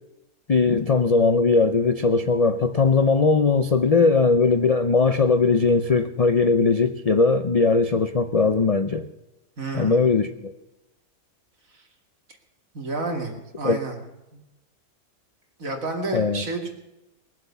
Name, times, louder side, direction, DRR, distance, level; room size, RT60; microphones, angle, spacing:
voice 1, 0.5-9.1 9.7-10.5 13.6-13.8 16.1-16.4, left 4 dB, 60° left, 9 dB, 0.4 m, -19 dB
voice 2, 9.6-10.1 11.7-11.8 12.7-14.0 14.3-14.4 15.6-16.7, right 3 dB, 60° right, 2 dB, 2.9 m, -30 dB
21.0 x 7.6 x 7.0 m, 0.96 s
omnidirectional pair, 1.6 m